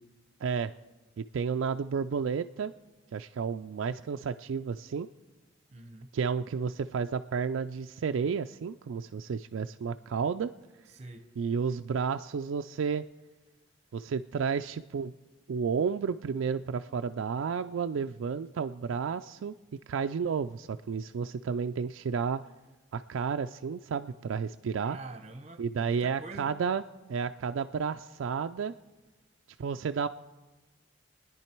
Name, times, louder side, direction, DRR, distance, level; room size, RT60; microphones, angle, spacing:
voice 1, 0.4-0.7 1.2-2.7 3.1-5.1 6.1-10.5 11.4-13.0 13.9-15.1 15.5-19.5 19.9-22.4 22.9-25.0 25.6-26.8 27.1-28.7 29.6-30.1, right 6 dB, 90° right, 7 dB, 0.4 m, -31 dB
voice 2, 5.7-6.1 10.9-11.2 24.8-26.5, right 2 dB, 35° right, 8 dB, 1.0 m, -45 dB
27.5 x 10.0 x 4.5 m, 1.2 s
head